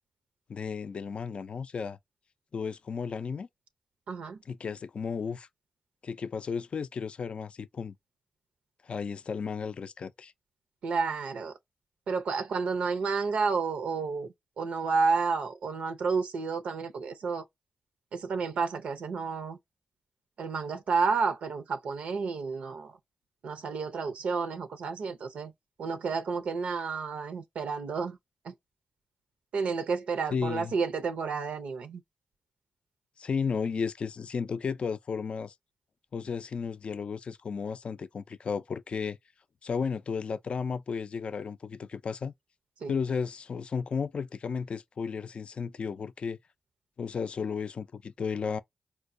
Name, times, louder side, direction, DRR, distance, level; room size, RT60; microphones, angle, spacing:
voice 1, 0.5-2.0 2.5-3.5 4.5-5.5 6.0-7.9 8.8-10.3 30.3-30.7 33.2-35.5 36.1-39.2 39.6-42.3 42.9-46.4 47.0-48.6, left 5 dB, 65° left, 0.3 m, -33 dB
voice 2, 4.1-4.4 10.8-11.5 12.1-17.4 18.1-19.6 20.4-23.0 23.4-25.5 25.8-28.2 28.4-28.5 29.5-32.0 42.8-42.9, right 5 dB, 85° right, 0.5 m, -31 dB
4.3 x 2.1 x 2.5 m
supercardioid pair, 40°, 2 cm